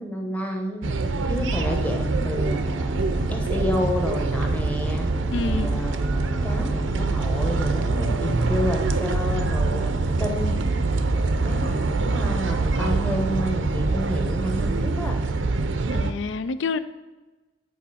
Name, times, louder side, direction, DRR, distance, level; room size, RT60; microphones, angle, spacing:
voice 1, 0.0-2.6 3.3-10.5 11.0-15.2, equal, 10° left, 1.0 m, -30 dB
sound 1, 0.8-16.1, right 3 dB, 75° right, 0.6 m, -24 dB
sound 2, 2.3-9.1, equal, 10° right, 0.4 m, -40 dB
voice 2, 5.3-5.8 15.9-16.8, left 4 dB, 70° left, 0.4 m, -28 dB
8.4 x 4.7 x 4.2 m
head